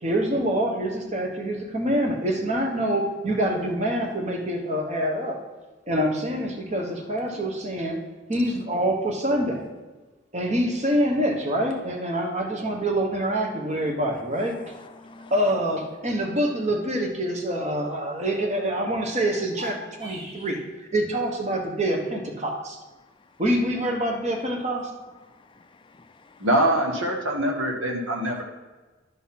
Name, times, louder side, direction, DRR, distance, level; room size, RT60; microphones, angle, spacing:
voice 1, 0.0-5.4 5.9-8.0 8.3-9.6 10.3-14.6 15.3-22.8 23.4-24.9, right 1 dB, 35° right, 1.2 m, -26 dB
voice 2, 14.3-15.3 23.1-23.4 25.2-26.5 28.3-28.4, left 3 dB, 25° left, 0.4 m, -50 dB
sound 1, 19.4-20.6, equal, 65° right, 2.2 m, -40 dB
voice 3, 26.4-28.4, right 1 dB, 85° right, 1.4 m, -23 dB
11.5 x 4.1 x 5.8 m
head